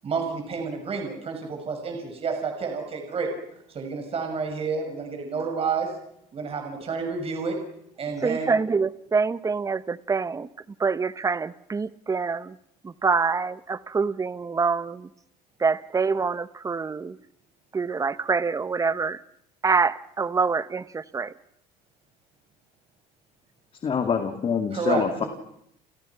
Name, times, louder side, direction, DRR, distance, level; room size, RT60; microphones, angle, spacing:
voice 1, 0.0-3.3 3.7-5.9 6.3-7.6 8.0-8.6 24.7-25.3, right 5 dB, 35° right, 3 dB, 6.2 m, -29 dB
voice 2, 8.2-10.5 10.8-12.6 12.8-15.1 15.6-17.2 17.7-19.2 19.6-21.3, right 4 dB, 20° right, 15 dB, 1.1 m, -25 dB
voice 3, 23.8-25.2, left 6 dB, 35° left, 6 dB, 2.3 m, -25 dB
29.5 x 29.5 x 6.0 m, 0.78 s
cardioid pair, 110°, 17 cm